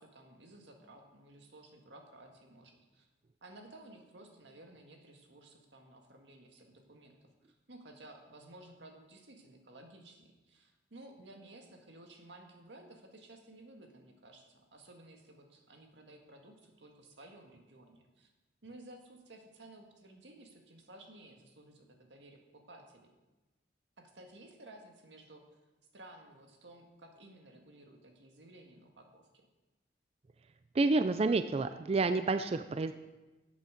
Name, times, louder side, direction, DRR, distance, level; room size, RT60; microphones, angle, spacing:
voice 1, 0.0-3.1 3.4-7.1 7.5-18.3 18.6-23.1 24.0-25.4 25.9-29.5, right 1 dB, 90° right, 3 dB, 1.8 m, -55 dB
voice 2, 30.7-32.9, right 3 dB, 35° right, 10 dB, 0.4 m, -29 dB
13.5 x 8.2 x 5.1 m, 1.1 s
head